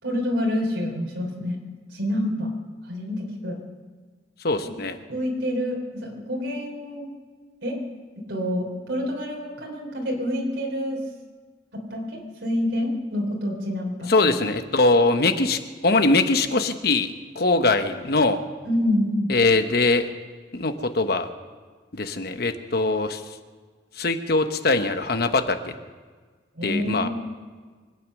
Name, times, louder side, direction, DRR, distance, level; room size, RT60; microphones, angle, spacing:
voice 1, 0.0-1.6 1.9-2.5 2.9-3.6 4.6-4.7 5.1-7.1 7.6-7.7 8.2-11.0 11.7-14.3 18.6-19.3 26.5-27.1, left 1 dB, 85° right, -1 dB, 3.3 m, -27 dB
voice 2, 4.4-5.0 14.1-18.4 19.3-20.1 20.5-21.3 21.9-23.2 24.0-25.7 26.6-27.1, left 3 dB, 60° left, 8 dB, 1.0 m, -22 dB
24.0 x 9.2 x 6.4 m, 1.5 s
head